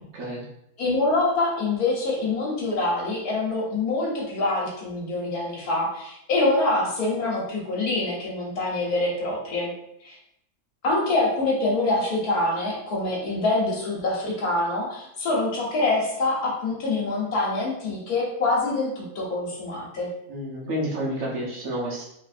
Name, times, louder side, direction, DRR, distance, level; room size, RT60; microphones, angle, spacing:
voice 1, 0.8-9.7 10.0-10.2 10.8-20.1, left 2 dB, 75° left, -3 dB, 1.6 m, -25 dB
voice 2, 20.3-22.1, equal, 60° right, -5 dB, 1.4 m, -30 dB
3.9 x 3.4 x 2.5 m, 0.79 s
omnidirectional pair, 1.6 m